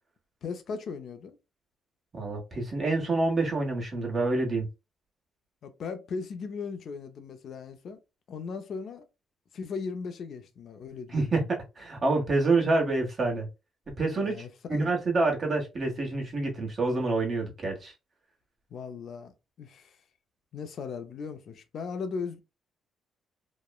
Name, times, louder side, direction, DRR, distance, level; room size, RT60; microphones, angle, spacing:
voice 1, 0.4-1.4 5.6-8.0 8.3-9.1 9.5-11.1 14.2-14.9 18.7-20.0 20.5-22.4, left 5 dB, 60° left, 0.5 m, -37 dB
voice 2, 2.1-4.7 11.1-13.5 14.0-17.9, right 3 dB, 40° right, 1.2 m, -27 dB
3.0 x 2.1 x 2.3 m
cardioid pair, 90°, 0 cm